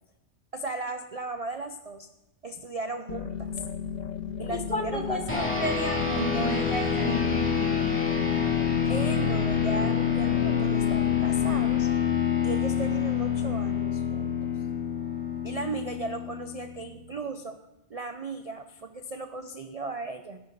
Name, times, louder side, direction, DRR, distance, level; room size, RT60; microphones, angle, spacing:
voice 1, 0.5-2.1 2.4-3.6 4.4-5.4 8.9-11.9 12.4-14.5 15.4-20.4, right 3 dB, 35° right, 7 dB, 0.6 m, -36 dB
sound 1, 3.1-11.8, left 7 dB, 85° left, 0.3 m, -36 dB
voice 2, 4.5-8.0, equal, 40° left, 2 dB, 2.2 m, -32 dB
sound 2, 5.3-17.0, left 7 dB, 10° left, 2.5 m, -27 dB
17.5 x 11.0 x 4.0 m, 0.95 s
omnidirectional pair, 1.5 m